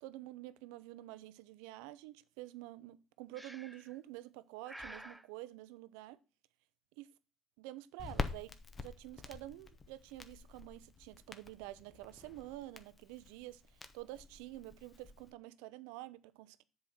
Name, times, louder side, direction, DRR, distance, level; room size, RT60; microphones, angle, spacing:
voice 1, 0.0-6.2 7.0-7.1 7.6-16.6, right 16 dB, 85° right, 0.5 m, -49 dB
Breathing, 3.3-4.0 4.7-5.3, right 1 dB, 5° right, 0.6 m, -50 dB
Crackle, 8.0-15.3, left 4 dB, 30° left, 0.9 m, -46 dB
7.3 x 4.2 x 6.1 m
supercardioid pair, 85°, 0 cm